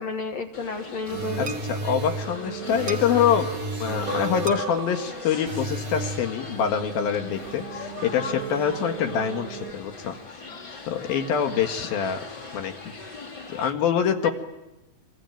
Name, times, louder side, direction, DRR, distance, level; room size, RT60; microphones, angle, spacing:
voice 1, 0.0-1.5 14.2-14.3, left 4 dB, 60° left, 4 dB, 2.0 m, -31 dB
sound 1, 0.5-13.7, left 3 dB, 30° left, 3.5 m, -40 dB
sound 2, 1.0-9.7, right 3 dB, 50° right, 1.0 m, -33 dB
voice 2, 1.4-3.5 3.8-10.2 10.9-12.2 12.5-12.7 13.5-14.3, left 8 dB, 75° left, 6 dB, 3.5 m, -25 dB
26.0 x 23.5 x 9.2 m, 0.98 s
omnidirectional pair, 4.3 m